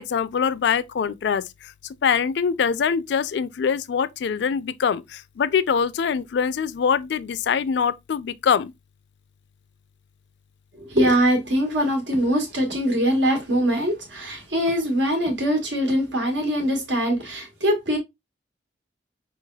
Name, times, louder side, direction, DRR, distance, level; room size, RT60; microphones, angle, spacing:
voice 1, 0.0-1.7 2.0-8.7, left 6 dB, 70° left, 0.3 m, -23 dB
voice 2, 10.8-18.0, equal, 80° right, 1.4 m, -22 dB
4.3 x 3.2 x 2.2 m
head